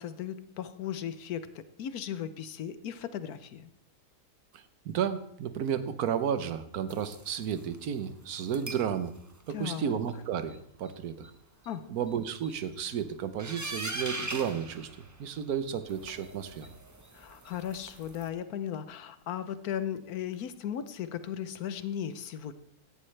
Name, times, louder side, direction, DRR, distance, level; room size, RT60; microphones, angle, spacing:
voice 1, 0.0-3.7 9.5-10.0 11.7-11.8 17.1-22.6, left 9 dB, 85° left, 12 dB, 1.3 m, -36 dB
voice 2, 4.5-9.1 9.5-11.3 11.9-14.9 15.2-16.7, right 8 dB, 85° right, 12 dB, 1.3 m, -32 dB
sound 1, 6.9-7.8 8.4-8.9 9.3-9.7 10.1-10.2 10.5-10.6 10.9-11.0 11.2-11.3 11.6-11.7 12.0-12.6 13.4-15.5 15.8-18.3, right 2 dB, 15° right, 0.7 m, -41 dB
16.5 x 11.0 x 3.3 m, 0.74 s
omnidirectional pair, 1.5 m